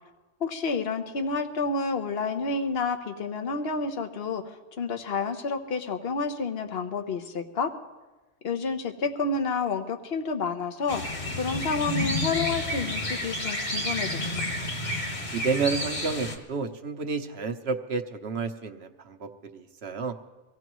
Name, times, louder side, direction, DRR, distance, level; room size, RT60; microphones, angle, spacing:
voice 1, 0.4-7.7 8.4-14.5, left 4 dB, 55° left, 6 dB, 1.2 m, -30 dB
sound 1, 10.9-16.4, left 1 dB, 35° left, 1.9 m, -30 dB
voice 2, 15.3-20.1, right 4 dB, 60° right, 6 dB, 1.1 m, -30 dB
24.0 x 16.5 x 3.1 m, 1.2 s
omnidirectional pair, 1.3 m